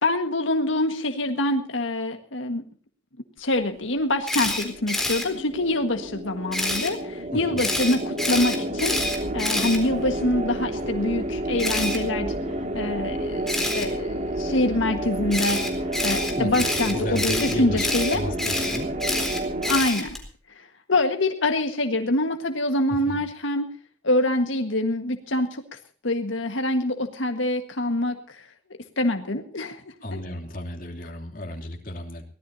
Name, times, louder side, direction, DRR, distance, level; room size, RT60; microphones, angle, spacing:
voice 1, 0.0-2.6 3.4-9.0 9.3-12.3 12.7-15.6 16.0-18.2 19.7-20.1 20.9-23.7 24.0-25.5 26.0-28.2 29.0-29.8 30.1-30.2, left 1 dB, 85° left, 5 dB, 1.6 m, -25 dB
Camera, 4.3-5.2 6.5-6.9 7.6-10.3 11.6-12.0 13.5-13.8 15.3-20.2, left 1 dB, ahead, 3.9 m, -27 dB
sound 1, 4.3-19.8, right 1 dB, 40° right, 2.2 m, -30 dB
voice 2, 7.3-7.6 16.4-18.9 22.9-23.2 30.0-32.2, left 1 dB, 45° left, 2 dB, 3.1 m, -33 dB
23.5 x 17.5 x 2.8 m, 0.42 s
head